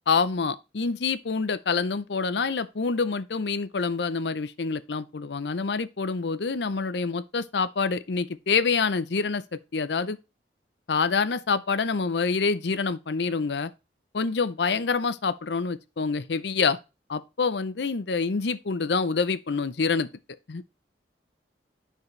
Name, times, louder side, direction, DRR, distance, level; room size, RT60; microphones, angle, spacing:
voice 1, 0.1-9.4 9.7-10.2 10.9-13.7 14.1-16.8 17.1-20.1 20.5-20.6, left 4 dB, 75° left, 0.6 m, -26 dB
11.0 x 4.6 x 3.2 m
head